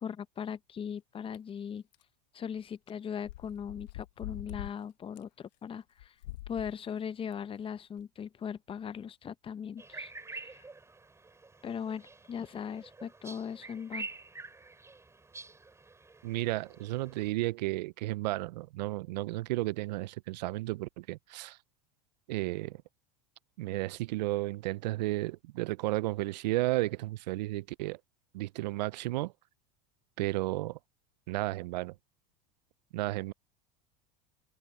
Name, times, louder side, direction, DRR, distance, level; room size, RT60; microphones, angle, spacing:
voice 1, 0.0-1.8 2.3-6.1 6.5-10.6 11.6-14.1, left 7 dB, 25° left, 0.8 m, -39 dB
sound 1, 1.3-1.4 1.9-2.0 2.9-3.0 3.2-4.7 5.2-5.3 6.0-6.8 7.3-7.4 8.0-8.1, left 16 dB, 85° left, 1.1 m, -43 dB
sound 2, 9.8-17.3, right 3 dB, 15° right, 5.3 m, -47 dB
voice 2, 16.2-21.6 22.3-22.8 23.6-28.0 28.3-29.3 30.2-30.8 31.3-31.9 32.9-33.3, right 18 dB, 85° right, 0.4 m, -33 dB
supercardioid pair, 110°, 21 cm